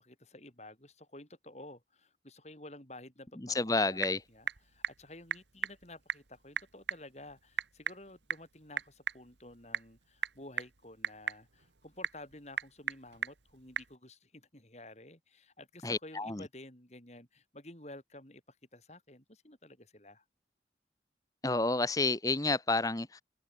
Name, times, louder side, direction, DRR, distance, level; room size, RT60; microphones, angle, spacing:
voice 1, 0.0-4.0 4.3-20.2, left 1 dB, 40° left, 5.1 m, -52 dB
voice 2, 3.5-4.2 15.8-16.4 21.4-23.2, left 3 dB, 20° left, 1.1 m, -30 dB
Typing / Telephone, 3.5-14.0, right 6 dB, 90° right, 1.9 m, -40 dB
head